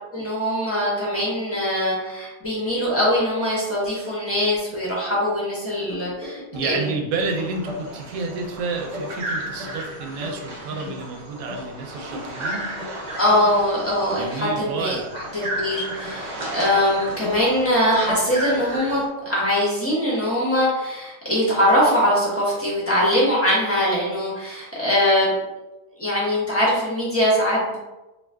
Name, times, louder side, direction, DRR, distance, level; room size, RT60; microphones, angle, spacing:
voice 1, 0.1-6.9 13.2-25.3 26.0-27.8, equal, 10° left, -7 dB, 0.9 m, -22 dB
sound 1, 5.7-7.2 7.5-8.5 8.8-11.1 11.3-12.3 12.6-13.7 13.9-16.2 16.5-17.6 17.9-19.0 19.2-19.6, left 2 dB, 35° right, 1.2 m, -37 dB
voice 2, 6.5-12.7 14.1-15.1, right 4 dB, 85° right, 3 dB, 1.0 m, -30 dB
sound 2, 7.2-19.1, right 1 dB, 60° right, 0.4 m, -34 dB
2.4 x 2.4 x 3.3 m, 1.0 s
omnidirectional pair, 1.4 m